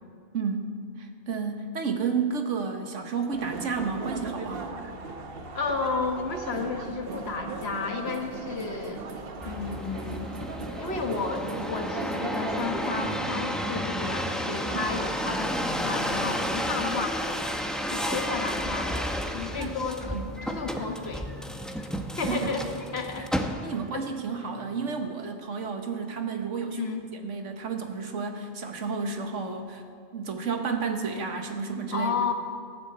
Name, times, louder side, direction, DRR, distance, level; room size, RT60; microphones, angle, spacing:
voice 1, 1.0-4.9 14.7-14.9 19.6-19.8 20.1-20.3 22.3-22.6 23.6-29.8 30.1-32.1, right 5 dB, 85° right, 5 dB, 1.6 m, -31 dB
sound 1, 3.3-13.3, right 4 dB, 55° right, 1.1 m, -38 dB
voice 2, 5.5-9.0 9.4-10.3 10.8-17.2 17.9-21.3 22.2-22.6 22.9-23.3 23.9-24.0 26.7-27.0 31.9-32.3, left 4 dB, 60° left, 5 dB, 1.5 m, -32 dB
sound 2, 9.4-24.0 24.5-25.1, equal, ahead, 0.6 m, -32 dB
14.0 x 9.8 x 8.0 m, 2.2 s
omnidirectional pair, 1.2 m